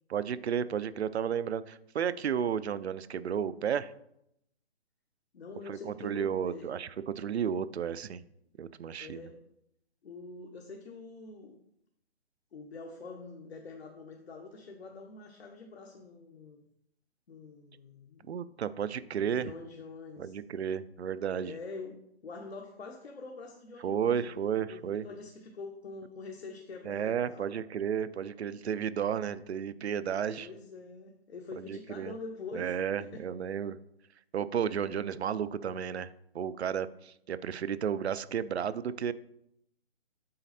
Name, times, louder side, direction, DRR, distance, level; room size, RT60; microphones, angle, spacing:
voice 1, 0.1-3.9 5.7-8.2 8.6-9.3 18.3-19.5 20.2-21.5 23.8-25.0 26.8-30.5 31.6-32.1 32.5-33.8 34.3-39.1, right 8 dB, 75° right, 15 dB, 0.5 m, -33 dB
voice 2, 5.3-6.8 9.0-9.4 10.0-11.6 12.5-16.6 17.3-18.4 19.2-20.4 21.4-27.6 30.4-33.2, left 4 dB, 70° left, 2 dB, 1.0 m, -45 dB
7.7 x 4.1 x 4.2 m, 0.77 s
hypercardioid pair, 175°, 33 cm